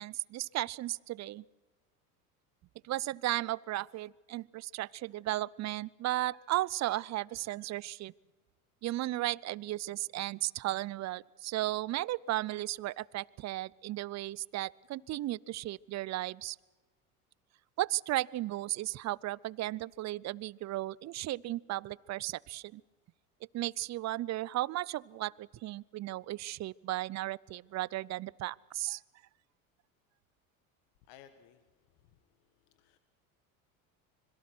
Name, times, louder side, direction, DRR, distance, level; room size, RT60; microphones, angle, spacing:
voice 1, 0.0-1.4 2.8-8.1 8.8-16.6 17.8-22.8 23.5-29.0, right 16 dB, 40° right, 24 dB, 0.6 m, -35 dB
voice 2, 31.0-33.0, left 9 dB, 70° left, 9 dB, 1.8 m, -60 dB
26.0 x 22.0 x 6.1 m, 1.3 s
hypercardioid pair, 85°, 42 cm